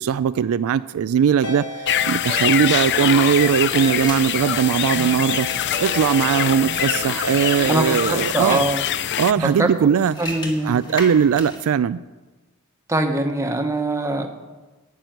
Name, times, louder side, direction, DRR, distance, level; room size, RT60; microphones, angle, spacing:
voice 1, 0.0-5.5 5.8-8.7 9.2-10.2 10.6-12.0, right 7 dB, 65° right, 14 dB, 0.3 m, -19 dB
Ringtone, 1.4-8.3, left 2 dB, 85° left, 5.2 m, -31 dB
sound 1, 1.9-9.3, left 11 dB, 50° left, 0.4 m, -24 dB
sound 2, 3.6-11.7, equal, 20° left, 1.9 m, -37 dB
voice 2, 7.6-8.8 9.4-9.7 10.2-10.8 12.9-14.3, right 2 dB, 15° right, 4 dB, 1.2 m, -22 dB
13.5 x 6.1 x 9.2 m, 1.2 s
head